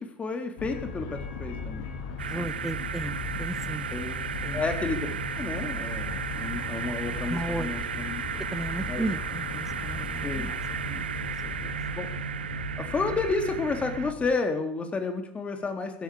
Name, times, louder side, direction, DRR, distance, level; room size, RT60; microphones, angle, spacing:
voice 1, 0.0-1.9 3.9-4.2 4.5-5.1 5.4-8.2 8.9-9.1 10.2-10.5 12.0-12.1 12.8-16.0, left 4 dB, 25° left, 6 dB, 3.8 m, -31 dB
sound 1, 0.6-14.3, left 4 dB, 60° left, 3.8 m, -37 dB
sound 2, 2.2-14.1, right 8 dB, 85° right, 0.6 m, -35 dB
voice 2, 2.3-3.9 4.4-4.6 7.2-7.7 8.5-11.1 11.6-11.8, right 2 dB, 10° right, 14 dB, 1.4 m, -35 dB
15.5 x 10.5 x 8.7 m, 0.64 s
hypercardioid pair, 80°, 5 cm